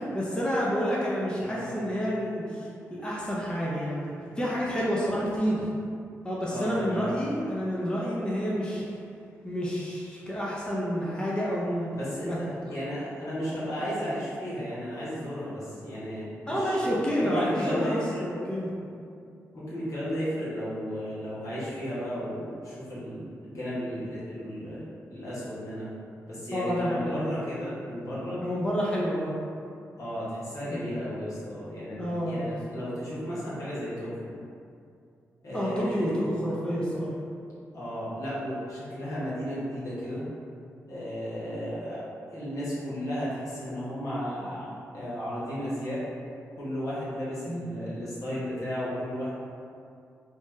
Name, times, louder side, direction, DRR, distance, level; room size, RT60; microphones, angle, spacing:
voice 1, 0.1-5.7 6.2-8.8 9.4-11.9 12.2-12.4 16.5-18.7 26.5-27.2 28.4-29.3 30.7-30.8 32.0-32.5 35.5-37.1 47.4-47.7, equal, 15° left, -6 dB, 0.7 m, -29 dB
voice 2, 1.4-1.7 6.5-7.1 11.9-18.2 19.5-24.8 25.1-25.9 26.3-28.4 30.0-34.3 35.4-36.1 37.7-40.2 40.9-46.0 46.6-49.3, equal, 65° left, -9 dB, 1.2 m, -34 dB
3.1 x 2.2 x 3.2 m, 2.4 s
cardioid pair, 55°, 6 cm